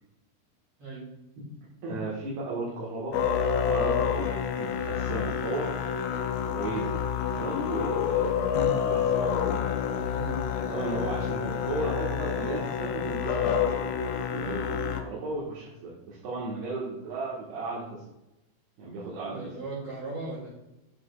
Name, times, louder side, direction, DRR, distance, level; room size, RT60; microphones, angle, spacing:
voice 1, 1.8-3.2 3.6-5.7 6.5-9.3 10.6-13.9 14.3-17.8 18.8-19.4, right 2 dB, 80° right, -7 dB, 3.6 m, -35 dB
Musical instrument, 3.1-15.0, left 7 dB, 80° left, 2.3 m, -28 dB
voice 2, 19.3-20.5, right 3 dB, 40° right, -8 dB, 3.3 m, -37 dB
8.1 x 8.0 x 2.4 m, 0.93 s
omnidirectional pair, 4.6 m